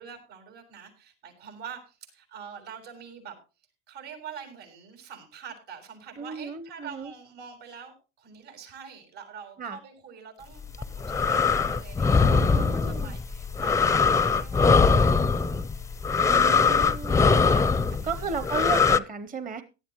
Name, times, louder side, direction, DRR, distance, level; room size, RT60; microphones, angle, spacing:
voice 1, 0.0-3.4 3.9-15.0 15.4-15.7 16.3-16.6 17.9-18.7, right 7 dB, 75° right, 4 dB, 6.5 m, -45 dB
voice 2, 6.2-7.1 9.6-9.8 12.2-13.1 16.3-17.6 18.0-19.6, right 5 dB, 25° right, 11 dB, 0.9 m, -34 dB
sound 1, 10.6-19.0, left 5 dB, 10° left, 0.5 m, -22 dB
17.5 x 11.5 x 3.0 m, 0.30 s
supercardioid pair, 100°, 35 cm